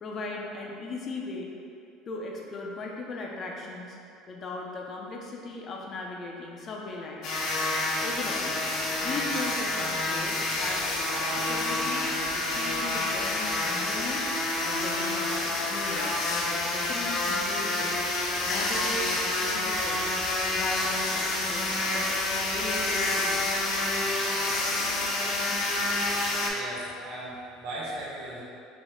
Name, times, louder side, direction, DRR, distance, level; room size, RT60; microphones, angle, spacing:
voice 1, 0.0-1.5 2.1-4.0 4.3-7.4 8.0-8.7 9.0-12.1 12.3-18.0 18.4-20.2 20.4-21.6 21.9-22.1 22.5-23.5, left 2 dB, 35° left, -1 dB, 0.5 m, -38 dB
sound 1, 7.2-26.5, left 2 dB, 65° left, 0.8 m, -28 dB
voice 2, 26.5-28.4, right 1 dB, 80° right, -7 dB, 1.2 m, -38 dB
5.1 x 2.1 x 3.6 m, 2.6 s
cardioid pair, 130°, 0 cm